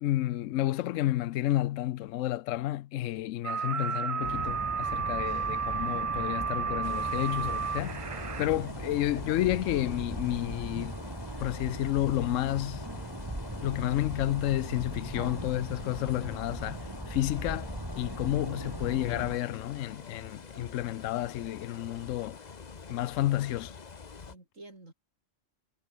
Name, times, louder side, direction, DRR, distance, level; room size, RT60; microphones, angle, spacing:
voice 1, 0.0-8.0 8.4-11.0 11.4-12.8 13.6-22.4 22.9-23.8, left 14 dB, 85° left, 0.9 m, -31 dB
sound 1, 3.4-8.5, right 6 dB, 40° right, 0.5 m, -32 dB
sound 2, 4.2-19.4, right 1 dB, 15° right, 3.7 m, -39 dB
sound 3, 6.8-24.3, left 5 dB, 35° left, 1.1 m, -47 dB
voice 2, 19.1-19.6 24.3-24.9, right 2 dB, 85° right, 5.5 m, -52 dB
omnidirectional pair, 1.3 m